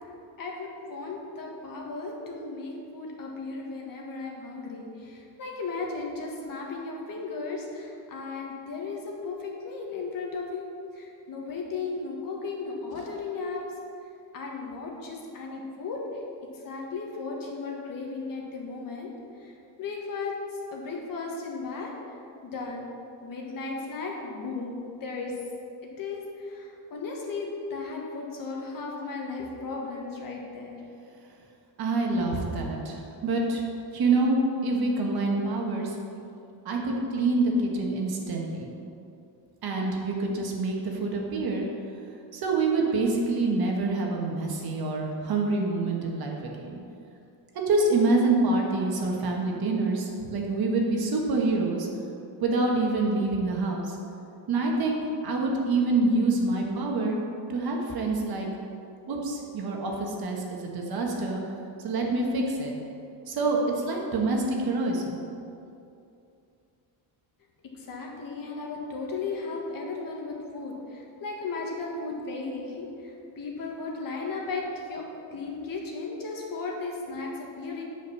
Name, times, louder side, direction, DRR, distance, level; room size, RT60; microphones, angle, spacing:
voice 1, 0.4-10.7 10.9-13.6 14.3-16.0 16.6-19.1 19.4-19.5 19.8-20.3 20.7-21.9 22.4-22.8 23.2-25.3 26.0-30.8 67.7-75.0 75.3-77.8, left 4 dB, 45° left, -1 dB, 1.7 m, -35 dB
voice 2, 31.8-33.6 33.9-36.0 36.6-38.7 39.6-41.6 42.3-46.8 47.5-51.9 52.4-54.0 54.5-57.2 57.5-58.5 59.1-61.4 61.8-62.7 63.3-65.2, right 2 dB, 50° right, 0 dB, 1.6 m, -26 dB
9.9 x 5.2 x 6.9 m, 2.6 s
cardioid pair, 165°, 45 cm